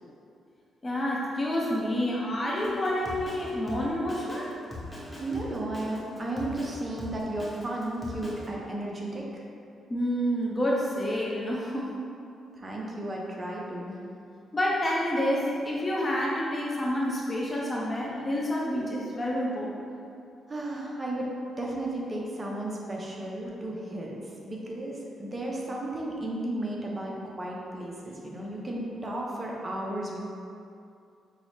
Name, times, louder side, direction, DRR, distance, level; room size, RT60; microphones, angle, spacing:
voice 1, 0.8-4.5 9.9-11.9 14.5-19.7, equal, 30° left, -4 dB, 0.6 m, -28 dB
Drum kit, 2.6-8.5, left 2 dB, ahead, 0.9 m, -41 dB
voice 2, 5.2-9.4 12.6-14.0 20.5-21.3 21.6-24.2 24.4-30.2, right 1 dB, 30° right, -2 dB, 0.6 m, -34 dB
5.5 x 2.0 x 3.2 m, 2.5 s
cardioid pair, 80°, 0 cm